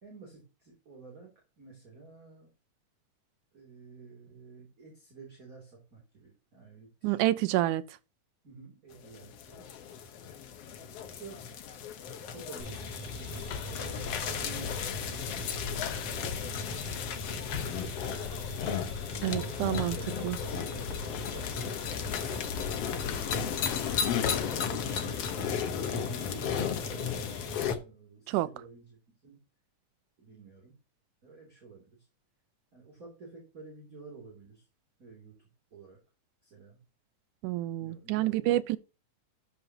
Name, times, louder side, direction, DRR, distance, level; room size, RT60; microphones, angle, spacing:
voice 1, 0.0-2.5 3.5-7.7 8.4-9.7 11.1-11.5 12.0-15.9 16.5-17.0 17.3-18.4 19.2-21.9 22.8-23.6 24.2-27.4 27.7-29.4 30.2-30.7 31.2-32.1 32.7-34.7 35.0-36.0 36.4-36.8 37.8-38.6, right 4 dB, 25° right, 2.9 m, -50 dB
voice 2, 7.0-7.8 19.2-20.0 20.2-20.4 28.3-28.5 37.4-38.8, right 15 dB, 80° right, 2.0 m, -28 dB
sound 1, 8.9-27.8, left 7 dB, 60° left, 1.8 m, -35 dB
sound 2, 12.6-27.7, left 1 dB, 15° left, 5.9 m, -43 dB
sound 3, 13.1-24.6, left 7 dB, 80° left, 2.6 m, -40 dB
13.0 x 9.1 x 2.8 m
omnidirectional pair, 3.8 m